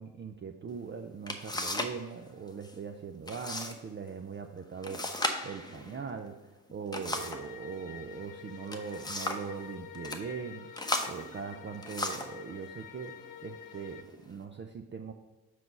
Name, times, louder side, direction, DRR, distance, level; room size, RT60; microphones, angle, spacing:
voice 1, 0.0-13.1 13.4-15.1, right 6 dB, 25° right, 5 dB, 0.6 m, -41 dB
sound 1, 0.8-0.9 1.3-2.0 2.3-2.8 3.3-3.8 4.1-4.2 4.8-7.5 8.5-9.5 9.9-10.2 10.7-12.4 13.2-13.3 13.9-14.4, left 1 dB, 10° left, 0.9 m, -36 dB
sound 2, 7.1-14.0, left 10 dB, 45° left, 0.7 m, -48 dB
5.9 x 4.8 x 5.3 m, 1.2 s
figure-of-eight pair, 45°, 45 cm